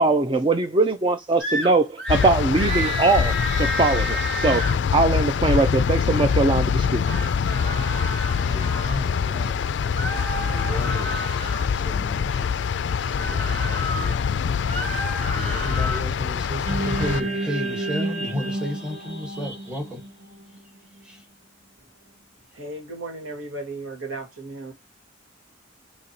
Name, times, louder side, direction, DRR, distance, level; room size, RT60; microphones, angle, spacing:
voice 1, 0.0-4.6 4.9-7.0, right 3 dB, 25° right, 0.3 m, -21 dB
sound 1, 1.4-1.7 2.0-2.3 2.6-4.8 6.8-9.0 9.9-11.7 13.1-14.1 14.6-16.0, equal, 65° right, 1.6 m, -31 dB
sound 2, 2.1-17.2, left 6 dB, 65° left, 0.3 m, -24 dB
voice 2, 8.4-9.6 10.3-12.5 12.9-14.3 15.3-20.0 21.0-21.2, equal, 5° right, 1.2 m, -34 dB
sound 3, 16.6-21.0, right 2 dB, 40° right, 1.0 m, -30 dB
voice 3, 22.5-24.7, right 2 dB, 90° right, 1.7 m, -35 dB
4.4 x 2.8 x 2.7 m
head